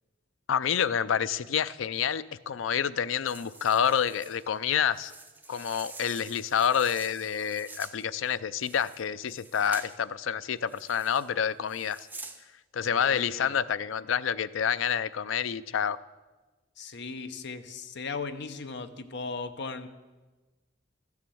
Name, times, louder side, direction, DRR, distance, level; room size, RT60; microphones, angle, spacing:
voice 1, 0.5-5.1 5.5-12.1 12.7-16.0, left 8 dB, 80° left, 16 dB, 0.4 m, -28 dB
sound 1, 3.3-10.0 10.7-11.3 11.7-12.4, right 3 dB, 10° right, 0.7 m, -47 dB
voice 2, 12.9-13.6 16.8-19.9, left 4 dB, 60° left, 9 dB, 0.8 m, -37 dB
13.5 x 7.1 x 7.7 m, 1.2 s
head